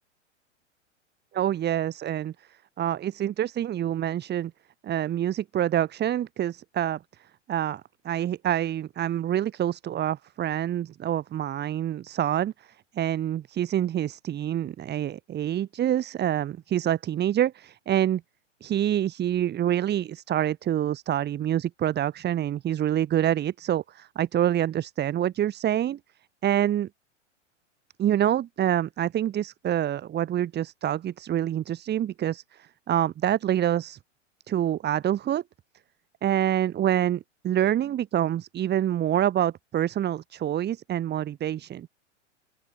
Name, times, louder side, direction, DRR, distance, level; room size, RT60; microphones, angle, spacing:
voice 1, 1.3-2.3 2.8-4.5 4.8-7.0 7.5-18.2 18.6-26.0 26.4-26.9 28.0-34.0 34.5-35.4 36.2-41.9, right 11 dB, 25° right, 5.7 m, -26 dB
open air
hypercardioid pair, 110°, 37 cm